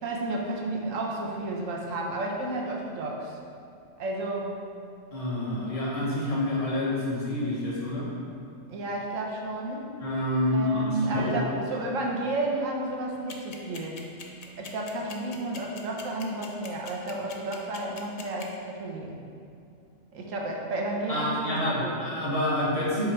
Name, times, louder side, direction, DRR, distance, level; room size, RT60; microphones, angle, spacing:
voice 1, 0.0-3.4 4.0-4.5 8.7-9.9 10.5-14.0 14.6-19.2 20.1-22.0, right 2 dB, 85° right, -1 dB, 1.2 m, -32 dB
voice 2, 5.1-8.1 10.0-11.3 21.1-23.1, left 1 dB, 30° left, -7 dB, 1.5 m, -28 dB
sound 1, 13.3-18.4, left 5 dB, 45° left, 0.5 m, -42 dB
7.9 x 3.6 x 4.4 m, 2.5 s
omnidirectional pair, 1.3 m